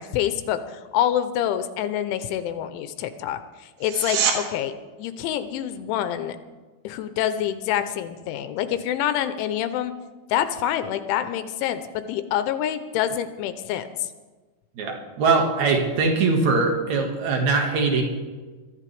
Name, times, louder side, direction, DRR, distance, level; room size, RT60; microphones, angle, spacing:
voice 1, 0.0-4.7 5.0-6.4 6.8-9.9 10.3-14.1, left 10 dB, 85° left, 10 dB, 3.1 m, -26 dB
sound 1, 3.8-4.4 15.7-15.8, right 7 dB, 80° right, 4.0 m, -24 dB
voice 2, 14.8-18.0, right 4 dB, 55° right, 2 dB, 2.3 m, -21 dB
23.5 x 13.5 x 3.4 m, 1.3 s
omnidirectional pair, 5.6 m